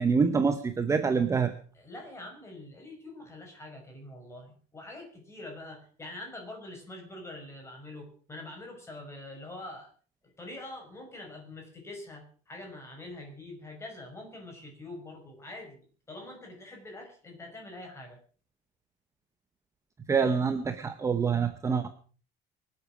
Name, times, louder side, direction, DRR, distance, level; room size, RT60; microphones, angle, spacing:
voice 1, 0.0-1.5 20.1-21.9, right 5 dB, 15° right, 9 dB, 0.9 m, -26 dB
voice 2, 1.7-9.9 10.2-15.8 16.1-18.2, left 2 dB, 15° left, 2 dB, 5.9 m, -44 dB
24.5 x 8.6 x 6.2 m, 0.42 s
cardioid pair, 175°, 19 cm